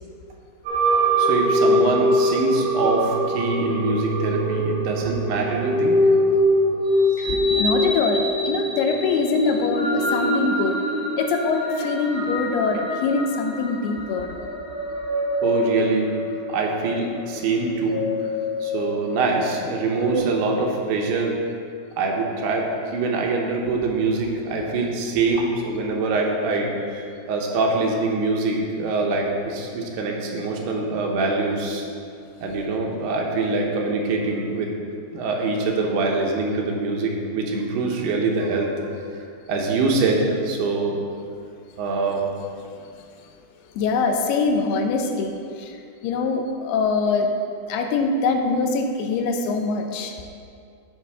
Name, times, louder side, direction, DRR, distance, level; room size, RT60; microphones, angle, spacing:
sound 1, 0.6-20.2, equal, 45° right, 2.8 m, -24 dB
voice 1, 1.2-6.0 15.4-16.2 16.5-18.1 18.6-21.4 22.0-31.8 32.4-34.7 35.1-38.9 39.5-41.0 41.8-42.2, right 3 dB, 80° right, 0 dB, 2.9 m, -24 dB
voice 2, 7.2-10.8 11.2-14.3 43.2-43.3 43.8-45.8 46.0-47.3 47.7-50.2, left 4 dB, 80° left, 4 dB, 2.6 m, -23 dB
12.5 x 5.2 x 3.5 m, 2.4 s
omnidirectional pair, 4.7 m